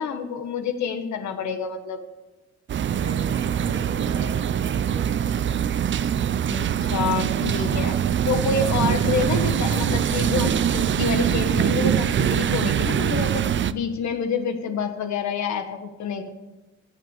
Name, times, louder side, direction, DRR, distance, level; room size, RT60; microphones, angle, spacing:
voice 1, 0.0-2.0 6.5-8.0 8.3-13.4 13.7-16.3, left 5 dB, 70° left, 7 dB, 1.4 m, -27 dB
sound 1, 2.7-13.7, right 9 dB, 40° right, 0.5 m, -23 dB
voice 2, 2.9-5.7 8.6-8.9, right 2 dB, 75° right, -2 dB, 4.3 m, -38 dB
16.5 x 5.9 x 7.3 m, 1.1 s
cardioid pair, 90°, 30 cm